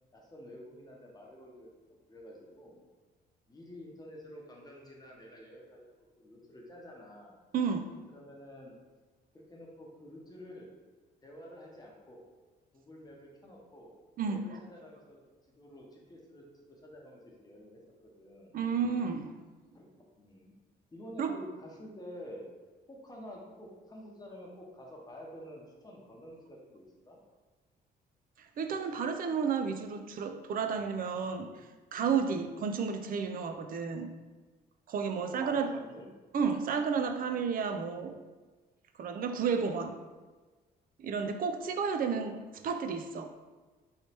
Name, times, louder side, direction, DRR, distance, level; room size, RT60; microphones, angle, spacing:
voice 1, 0.1-2.8 3.5-5.9 6.2-7.4 8.1-8.7 9.3-10.7 11.2-12.2 12.7-13.9 14.2-15.2 15.6-17.8 18.2-18.6 19.7-19.9 20.2-20.5 20.9-22.5 22.9-27.2 35.2-36.1, equal, 20° left, -2 dB, 0.9 m, -49 dB
voice 2, 7.5-7.9 14.2-14.6 18.5-19.3 21.2-21.3 28.4-31.5 31.9-34.1 34.9-35.8 36.3-38.2 39.0-40.0 41.0-43.3, right 6 dB, 55° right, 6 dB, 0.4 m, -32 dB
3.1 x 3.1 x 2.8 m, 1.3 s
cardioid pair, 85°, 18 cm